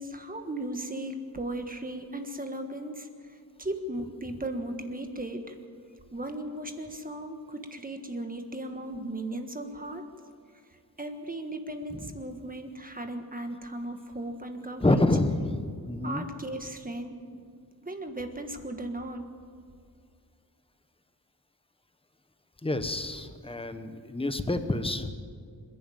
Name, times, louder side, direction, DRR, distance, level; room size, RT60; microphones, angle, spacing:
voice 1, 0.0-5.6 6.1-10.0 11.0-15.0 16.0-17.1 17.8-19.2, right 1 dB, 25° right, 6 dB, 1.5 m, -36 dB
voice 2, 14.8-16.2 22.6-25.1, left 2 dB, 15° left, 9 dB, 1.1 m, -28 dB
26.5 x 11.0 x 9.2 m, 2.2 s
wide cardioid pair, 145°, 37 cm